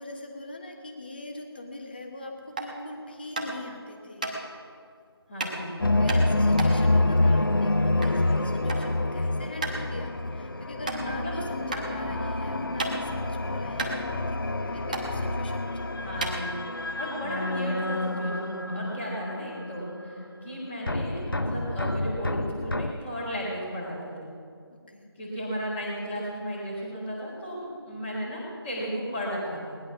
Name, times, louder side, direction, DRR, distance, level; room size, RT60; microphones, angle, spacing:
voice 1, 0.0-4.3 6.0-16.2 24.7-25.1, left 2 dB, 20° left, 3 dB, 1.2 m, -41 dB
sound 1, 2.5-2.8 3.3-3.7 4.2-4.3 5.4-5.6 6.1-8.2 8.5-8.9 9.2-9.3 9.6-9.8 10.3-10.4 10.8-11.0 11.7-11.8 12.3-13.2 13.5-13.6 13.8-14.6 14.9-15.1 15.7-15.8 16.1-16.9, right 3 dB, 20° right, 1.1 m, -33 dB
voice 2, 5.3-5.8 10.9-11.3 16.0-24.3 25.2-29.8, equal, 5° left, -13 dB, 0.6 m, -35 dB
sound 2, 5.8-20.6 20.9-22.9, left 2 dB, 55° left, 0.9 m, -27 dB
19.5 x 10.5 x 6.0 m, 2.3 s
figure-of-eight pair, 165°, 14 cm